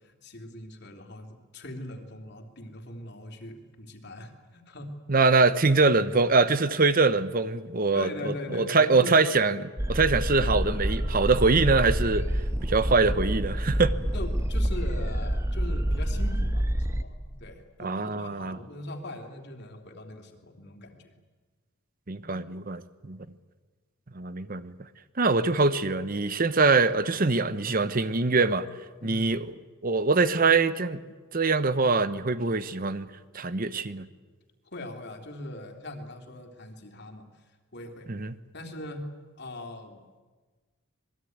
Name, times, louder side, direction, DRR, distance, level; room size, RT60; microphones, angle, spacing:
voice 1, 0.0-5.0 7.9-9.2 14.1-21.1 29.0-29.3 34.7-37.3 37.7-38.1 38.5-39.1 39.4-40.0, left 1 dB, 50° left, 3.2 m, -41 dB
voice 2, 5.1-12.3 12.6-13.9 17.8-18.6 22.1-22.8 23.1-23.2 24.1-24.7 25.2-28.7 29.0-29.5 29.8-31.0 31.3-33.1 33.3-34.1 38.1-38.3, right 3 dB, 40° right, 0.9 m, -23 dB
sound 1, 9.8-17.0, equal, 15° right, 1.1 m, -27 dB
26.5 x 21.0 x 9.4 m
head